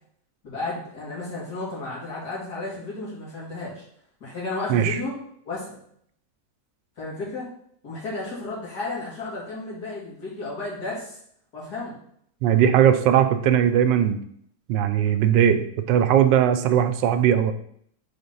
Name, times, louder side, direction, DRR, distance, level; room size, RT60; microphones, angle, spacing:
voice 1, 0.4-3.8 4.2-5.2 5.5-5.7 7.0-7.5 7.8-11.2 11.5-11.9, left 2 dB, 60° left, -6 dB, 2.9 m, -33 dB
voice 2, 4.7-5.0 12.4-14.2 14.7-17.5, right 9 dB, 85° right, 10 dB, 1.3 m, -19 dB
5.1 x 3.9 x 5.4 m, 0.66 s
omnidirectional pair, 1.9 m